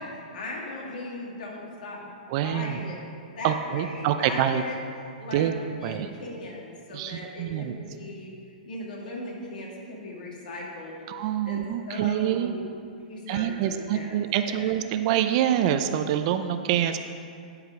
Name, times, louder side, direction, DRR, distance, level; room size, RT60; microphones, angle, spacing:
voice 1, 0.0-2.2 2.4-3.0 3.4-4.8 5.2-5.5 5.8-8.3 8.6-12.6 13.1-14.7, left 2 dB, 70° left, -2 dB, 2.3 m, -38 dB
voice 2, 2.3-2.8 3.4-4.6 5.3-5.5 5.8-6.1 6.9-7.8 11.1-12.5 13.3-17.0, right 11 dB, 45° right, 9 dB, 0.5 m, -26 dB
11.0 x 4.9 x 4.9 m, 2.4 s
hypercardioid pair, 140°, 5 cm